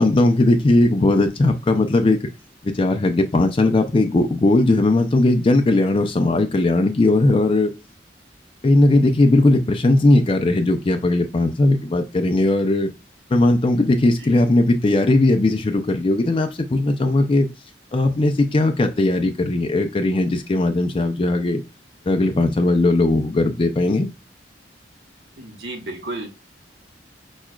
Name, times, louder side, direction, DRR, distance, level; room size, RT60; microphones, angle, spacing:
voice 1, 0.0-2.2 2.6-7.7 8.6-12.9 13.3-17.5 17.9-21.6 22.1-24.1, left 2 dB, 30° left, 5 dB, 0.4 m, -18 dB
voice 2, 25.4-26.3, right 2 dB, 80° right, 2 dB, 1.0 m, -32 dB
6.2 x 2.3 x 2.3 m, 0.27 s
head